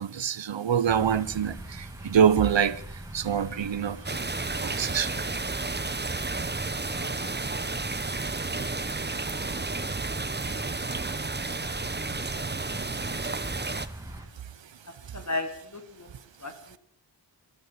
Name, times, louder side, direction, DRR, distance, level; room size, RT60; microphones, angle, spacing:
voice 1, 0.0-2.8 3.1-4.0 4.6-5.1, right 8 dB, 85° right, 0.8 m, -25 dB
sound 1, 0.8-14.3, right 1 dB, 5° right, 3.0 m, -42 dB
sound 2, 4.0-13.9, right 3 dB, 25° right, 0.9 m, -32 dB
voice 2, 5.9-6.3 6.7-7.3 7.8-7.9 9.2-9.6 10.1-10.2 15.1-16.1 16.4-16.5, left 2 dB, 40° left, 2.5 m, -37 dB
14.5 x 12.5 x 7.9 m
wide cardioid pair, 50°, 43 cm